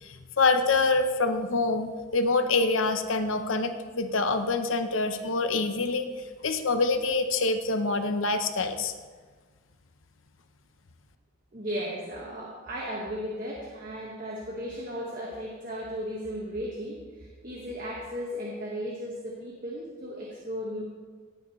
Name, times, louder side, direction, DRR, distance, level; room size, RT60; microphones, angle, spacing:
voice 1, 0.0-6.1 6.4-8.9, left 3 dB, 75° left, 8 dB, 0.8 m, -26 dB
voice 2, 11.5-20.8, equal, 40° right, -3 dB, 1.5 m, -35 dB
17.5 x 8.7 x 3.2 m, 1.5 s
head